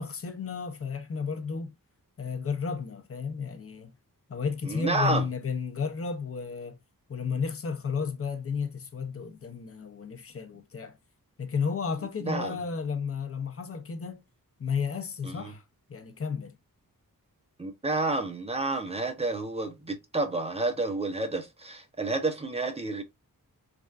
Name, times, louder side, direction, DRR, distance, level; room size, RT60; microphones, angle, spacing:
voice 1, 0.0-1.7 2.2-3.9 4.3-6.8 7.1-10.9 11.4-14.2 14.6-15.6 15.9-16.5, left 5 dB, 40° left, 0.6 m, -32 dB
voice 2, 4.6-5.3 12.3-12.6 15.2-15.5 17.6-23.0, right 2 dB, 15° right, 0.6 m, -30 dB
3.3 x 2.4 x 2.4 m
wide cardioid pair, 115°, 35 cm